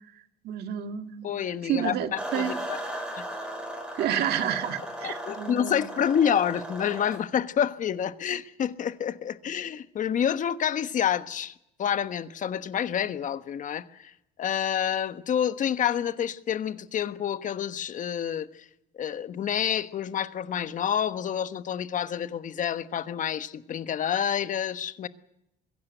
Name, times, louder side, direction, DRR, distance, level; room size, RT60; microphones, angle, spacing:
voice 1, 0.1-1.3 1.6-2.6 4.0-5.9, right 9 dB, 70° right, 2.0 m, -30 dB
voice 2, 1.2-2.8 3.2-3.3 5.0-14.1 14.4-18.7 19.0-25.1, left 9 dB, 50° left, 1.2 m, -28 dB
sound 1, 2.2-7.2, right 1 dB, 5° right, 5.4 m, -36 dB
22.0 x 16.5 x 9.1 m
cardioid pair, 110°, 17 cm